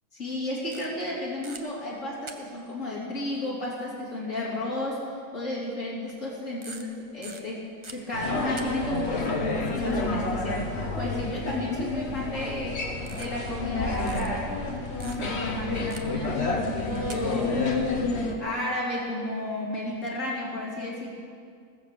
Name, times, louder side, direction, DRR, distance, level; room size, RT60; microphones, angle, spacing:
voice 1, 0.2-12.8 13.1-14.5 15.0-17.7 18.4-21.1, left 1 dB, 70° left, -5 dB, 3.7 m, -32 dB
sound 1, 0.7-1.1 1.4-1.6 2.3-2.7 3.9-4.0 4.5-4.6 6.0-6.3 6.6-8.6 8.9-9.0 12.0-12.3 13.0-13.7 14.1-14.3 15.0-15.5 15.9-16.2 16.9-17.7 19.3-19.4 19.8-20.1, right 3 dB, 25° right, 0.8 m, -44 dB
sound 2, 8.1-18.3, left 3 dB, 55° left, 1.6 m, -30 dB
19.5 x 7.9 x 6.8 m, 2.2 s
omnidirectional pair, 1.4 m